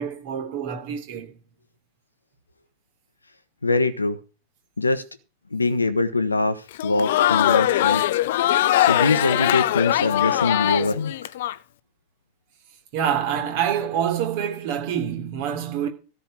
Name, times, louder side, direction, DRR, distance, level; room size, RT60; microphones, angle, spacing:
voice 1, 0.0-1.3 12.9-15.9, right 9 dB, 50° right, 3.1 m, -26 dB
voice 2, 3.6-4.2 4.8-5.0 5.5-8.0 8.9-11.3, left 3 dB, 80° left, 1.2 m, -23 dB
Crowd, 6.7-11.5, left 13 dB, 55° left, 0.6 m, -21 dB
14.0 x 5.7 x 8.8 m
figure-of-eight pair, 90°, 0 cm